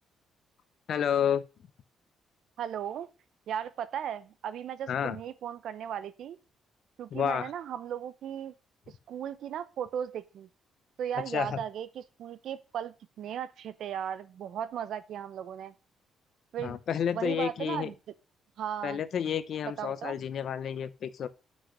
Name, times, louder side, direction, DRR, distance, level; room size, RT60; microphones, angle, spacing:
voice 1, 0.9-1.4 4.9-5.2 7.1-7.5 11.3-11.6 16.6-17.9 18.8-21.3, left 8 dB, 65° left, 0.7 m, -30 dB
voice 2, 2.6-3.1 3.5-6.4 7.0-8.5 9.1-10.5 11.0-15.7 16.5-16.8 17.1-17.9 18.6-19.0 19.8-20.2, right 9 dB, 75° right, 0.7 m, -36 dB
6.3 x 5.6 x 6.3 m
cardioid pair, 90°, 0 cm